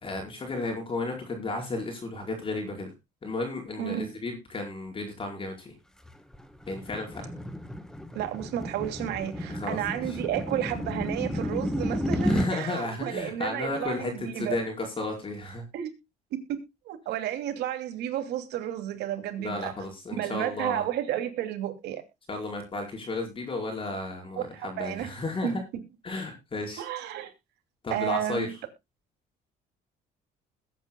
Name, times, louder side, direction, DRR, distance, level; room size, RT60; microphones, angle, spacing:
voice 1, 0.0-2.9 3.2-5.7 6.7-7.3 9.5-10.0 12.2-15.6 19.4-20.8 22.3-25.5 26.0-26.8 27.8-28.5, left 2 dB, 30° left, 4.9 m, -33 dB
voice 2, 3.8-4.1 8.1-14.6 15.7-15.9 16.3-16.6 16.9-19.8 20.2-22.0 24.4-25.1 25.4-25.6 26.8-27.3 27.9-28.5, right 11 dB, 80° right, 2.8 m, -32 dB
sound 1, 6.0-12.5, equal, 5° left, 1.5 m, -32 dB
21.0 x 9.2 x 2.3 m
cardioid pair, 110°, 17 cm